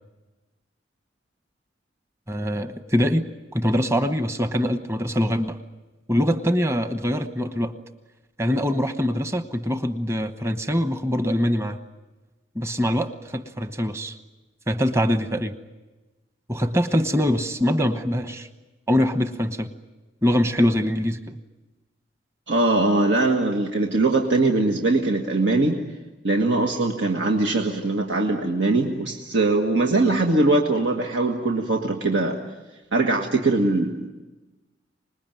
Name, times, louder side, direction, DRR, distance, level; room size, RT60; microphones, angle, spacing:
voice 1, 2.3-3.2 3.5-5.6 6.1-7.8 8.4-11.8 12.5-14.1 14.7-15.5 16.5-18.5 18.9-19.7 20.2-21.4, equal, 15° right, 8 dB, 1.0 m, -23 dB
voice 2, 22.5-25.8 26.2-32.4 32.9-34.1, right 2 dB, 90° right, 2 dB, 1.7 m, -21 dB
26.0 x 20.5 x 9.2 m, 1.1 s
head